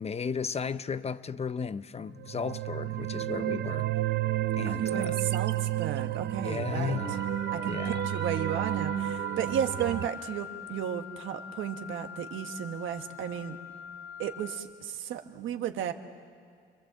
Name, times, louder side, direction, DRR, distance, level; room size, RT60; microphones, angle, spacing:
voice 1, 0.0-3.9 4.6-5.2 6.4-7.3 7.6-8.0, left 6 dB, 30° left, 0.6 m, -35 dB
sound 1, 2.2-10.1, right 13 dB, 60° right, 0.6 m, -31 dB
voice 2, 4.7-7.0 7.5-13.6 14.2-15.9, right 9 dB, 80° right, 1.4 m, -34 dB
Wind instrument woodwind instrument, 7.0-14.7, left 7 dB, 65° left, 1.1 m, -43 dB
26.5 x 21.5 x 7.6 m
cardioid pair, 90°, 20 cm